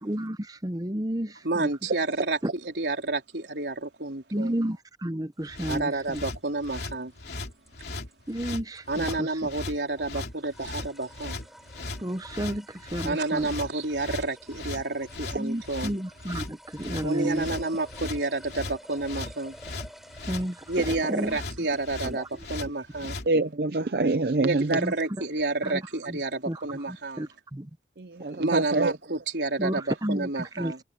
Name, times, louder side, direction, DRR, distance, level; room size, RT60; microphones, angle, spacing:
voice 1, 0.0-1.7 4.3-6.2 8.3-9.3 12.0-13.5 15.4-17.5 20.3-21.4 22.0-22.3 23.0-23.1 24.8-24.9 25.6-25.8 26.1-26.2 26.5-26.6 27.2-27.7 28.3-28.4 29.6-30.3 30.6-30.7, right 1 dB, 20° right, 0.9 m, -31 dB
voice 2, 1.4-4.5 5.7-7.1 8.9-11.4 13.0-15.9 17.0-19.6 20.7-23.2 24.4-27.3 28.4-30.8, right 2 dB, 80° right, 3.8 m, -30 dB
sound 1, 5.4-22.6, equal, ahead, 4.8 m, -51 dB
sound 2, 5.5-23.3, left 2 dB, 70° left, 2.8 m, -37 dB
voice 3, 23.3-24.7 28.0-28.9, right 2 dB, 60° right, 0.7 m, -25 dB
head